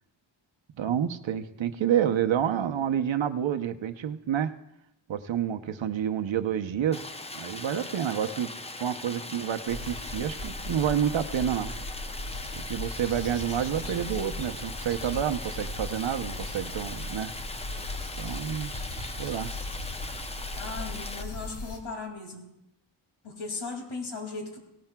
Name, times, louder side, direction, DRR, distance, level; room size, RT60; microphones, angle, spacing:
voice 1, 0.8-4.5 5.1-7.1 7.3-8.5 8.8-11.7 12.7-17.3 18.2-18.7 19.2-19.5, right 9 dB, 75° right, 8 dB, 0.8 m, -29 dB
Stream, 6.9-21.2, left 2 dB, 15° left, 0.5 m, -40 dB
sound 1, 9.7-21.8, left 2 dB, 60° left, 2.0 m, -38 dB
voice 2, 20.5-22.5 23.2-24.6, left 3 dB, 75° left, 2 dB, 2.5 m, -37 dB
17.5 x 17.0 x 2.3 m, 0.86 s
wide cardioid pair, 120°, 47 cm